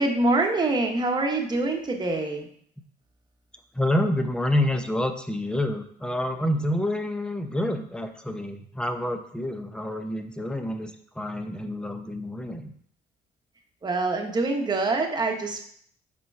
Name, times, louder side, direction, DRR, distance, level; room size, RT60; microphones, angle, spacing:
voice 1, 0.0-2.5 13.8-15.7, right 2 dB, 25° right, 2 dB, 1.2 m, -25 dB
voice 2, 3.7-10.9 11.2-12.7, left 1 dB, 5° left, 6 dB, 0.7 m, -28 dB
5.9 x 4.5 x 4.7 m, 0.62 s
cardioid pair, 110°, 17 cm